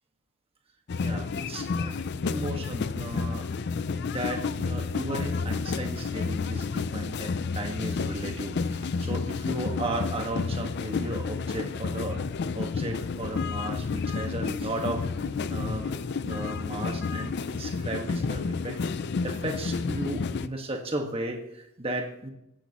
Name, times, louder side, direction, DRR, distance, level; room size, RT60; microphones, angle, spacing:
sound 1, 0.9-20.5, left 4 dB, 50° left, 0.4 m, -31 dB
voice 1, 1.0-3.5 4.0-12.2 12.5-15.0 15.5-18.8 19.2-22.3, right 1 dB, 25° right, 2 dB, 1.5 m, -35 dB
21.5 x 10.0 x 3.0 m, 0.83 s
head